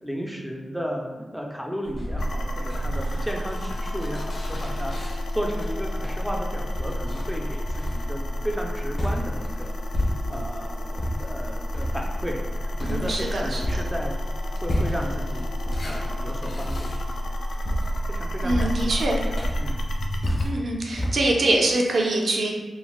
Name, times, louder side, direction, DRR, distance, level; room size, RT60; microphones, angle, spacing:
voice 1, 0.0-9.8 10.3-14.2 14.5-15.5 15.8-16.9 18.1-19.9, equal, ahead, 0 dB, 0.3 m, -34 dB
sound 1, 1.8-10.6 10.9-21.1, left 1 dB, 60° left, 0.8 m, -32 dB
sound 2, 2.2-20.5, equal, 75° left, 0.3 m, -30 dB
voice 2, 12.8-13.6 18.4-19.2 20.4-22.5, right 2 dB, 70° right, 0 dB, 0.5 m, -24 dB
3.8 x 2.0 x 2.3 m, 1.3 s
wide cardioid pair, 100°, 0 cm